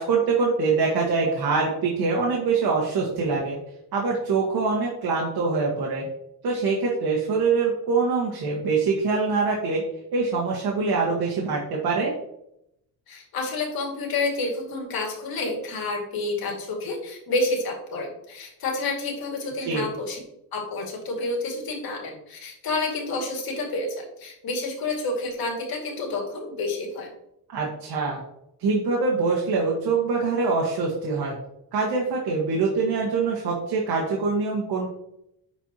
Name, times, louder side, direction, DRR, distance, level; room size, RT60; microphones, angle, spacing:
voice 1, 0.0-3.6 3.9-6.1 6.4-9.8 10.1-12.1 19.6-19.9 27.5-28.2 28.6-31.4 31.7-34.9, right 4 dB, 70° right, -2 dB, 1.8 m, -24 dB
voice 2, 13.1-20.2 20.5-27.1, left 2 dB, 70° left, 0 dB, 2.4 m, -29 dB
10.5 x 4.6 x 3.0 m, 0.79 s
cardioid pair, 125°, 38 cm